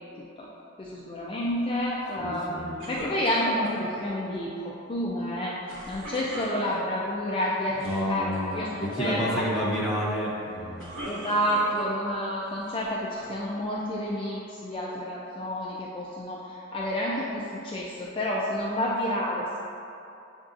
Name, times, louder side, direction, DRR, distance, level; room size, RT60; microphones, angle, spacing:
voice 1, 0.8-5.6 5.9-9.5 11.0-19.6, equal, 25° left, -5 dB, 0.3 m, -29 dB
voice 2, 2.2-2.8 7.8-10.8, equal, 5° right, -7 dB, 0.8 m, -30 dB
sound 1, 2.8-3.9 5.7-7.0 7.7-8.0 8.3-8.7 10.5-12.1 12.7-13.4, right 1 dB, 75° right, 1.0 m, -39 dB
7.6 x 2.6 x 2.4 m, 2.7 s
head